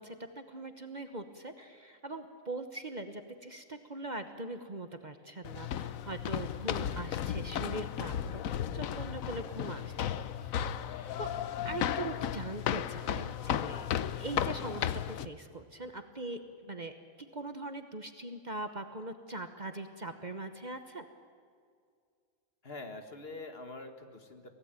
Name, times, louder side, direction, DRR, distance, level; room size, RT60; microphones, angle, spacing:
voice 1, 0.0-8.4 8.7-10.1 10.4-11.3 11.6-21.0, right 2 dB, 35° right, 8 dB, 1.2 m, -42 dB
sound 1, 5.4-15.3, left 9 dB, 80° left, 1.2 m, -34 dB
voice 2, 14.0-14.5 22.6-24.5, left 2 dB, 45° left, 6 dB, 1.9 m, -45 dB
24.0 x 17.5 x 9.1 m, 2.2 s
omnidirectional pair, 1.4 m